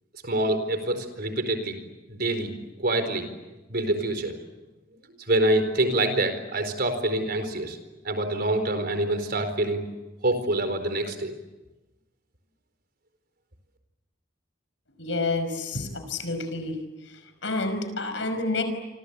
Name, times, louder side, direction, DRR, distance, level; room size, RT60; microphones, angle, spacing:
voice 1, 0.2-1.8 2.1-2.5 2.8-3.3 3.7-4.4 5.3-7.8 8.0-9.8 10.2-11.3, right 1 dB, 55° right, 8 dB, 4.4 m, -26 dB
voice 2, 15.0-16.7 17.4-18.6, left 2 dB, 80° left, 9 dB, 5.5 m, -29 dB
28.5 x 25.0 x 8.4 m, 1.1 s
head